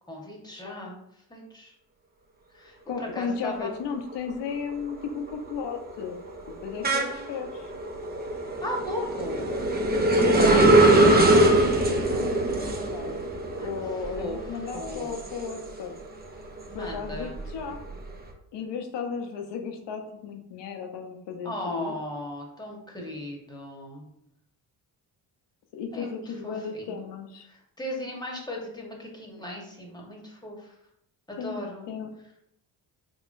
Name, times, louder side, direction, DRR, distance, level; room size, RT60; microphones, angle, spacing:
voice 1, 0.1-1.0 1.3-1.7 2.5-3.7 8.6-9.5 10.3-10.7 13.6-13.7 14.2-14.4 14.7-15.1 16.7-17.4 21.4-24.1 25.9-27.0 27.4-30.7 31.3-31.9, left 1 dB, 10° left, -2 dB, 1.2 m, -37 dB
voice 2, 2.9-6.2 6.6-7.7 10.2-13.2 13.6-15.9 16.7-17.8 18.5-21.9 25.7-27.5 31.4-31.6 31.9-32.1, left 6 dB, 60° left, 5 dB, 0.8 m, -35 dB
sound 1, 3.9-4.3 4.7-16.0 16.4-18.1, right 2 dB, 20° right, 0.6 m, -23 dB
3.7 x 3.0 x 2.5 m, 0.78 s
supercardioid pair, 60°, 47 cm